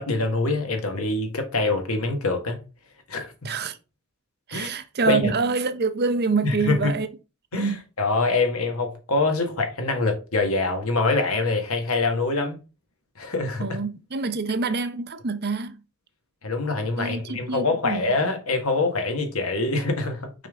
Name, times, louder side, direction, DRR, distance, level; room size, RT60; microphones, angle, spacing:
voice 1, 0.0-2.6 3.1-3.5 4.5-4.7 5.1-5.3 6.4-6.9 7.5-12.6 13.2-13.8 16.4-20.5, left 3 dB, 75° left, 1.7 m, -25 dB
voice 2, 3.4-3.8 4.5-7.1 7.5-7.8 13.6-15.7 17.0-18.1, right 4 dB, 50° right, 0.8 m, -26 dB
6.0 x 5.4 x 3.6 m
head